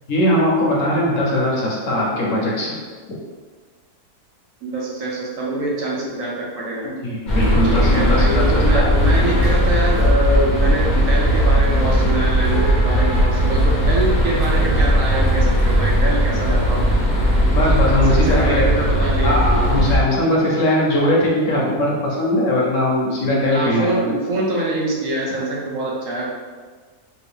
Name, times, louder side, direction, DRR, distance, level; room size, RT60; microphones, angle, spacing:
voice 1, 0.1-2.8 7.0-8.5 8.7-8.9 17.5-18.6 19.2-24.0, left 1 dB, 65° left, -4 dB, 1.0 m, -19 dB
voice 2, 4.6-6.9 7.7-16.9 18.1-19.4 23.5-26.3, right 1 dB, 65° right, -3 dB, 0.9 m, -24 dB
sound 1, 7.3-20.0, equal, 40° left, 0.7 m, -17 dB
3.4 x 2.5 x 3.4 m, 1.5 s
omnidirectional pair, 1.6 m